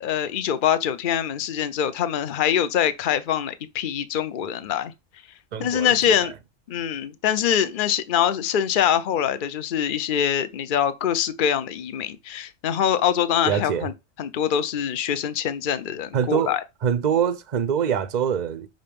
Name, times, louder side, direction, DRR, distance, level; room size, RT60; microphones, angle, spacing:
voice 1, 0.0-4.9 5.6-6.3 6.7-13.9 14.2-16.6, left 9 dB, 50° left, 0.8 m, -24 dB
voice 2, 5.5-5.9 13.5-13.9 16.1-16.5 16.8-18.7, right 8 dB, 45° right, 0.6 m, -24 dB
5.6 x 5.2 x 5.2 m
omnidirectional pair, 1.3 m